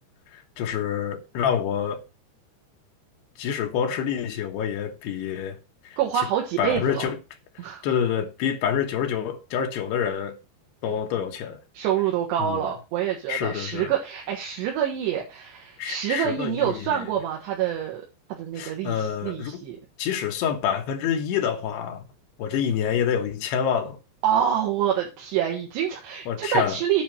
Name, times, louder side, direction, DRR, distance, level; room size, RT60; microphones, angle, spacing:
voice 1, 0.3-2.0 3.4-5.6 5.8-6.3 6.6-7.2 7.6-10.4 10.8-11.6 12.4-12.7 13.3-13.9 15.8-17.1 18.6-19.6 20.0-22.0 22.4-24.0 26.3-26.8, left 8 dB, 75° left, 3.3 m, -27 dB
voice 2, 6.0-7.1 7.6-7.8 11.7-18.0 18.3-19.8 24.2-27.0, right 10 dB, 80° right, 3.7 m, -26 dB
9.4 x 4.3 x 7.6 m
omnidirectional pair, 4.8 m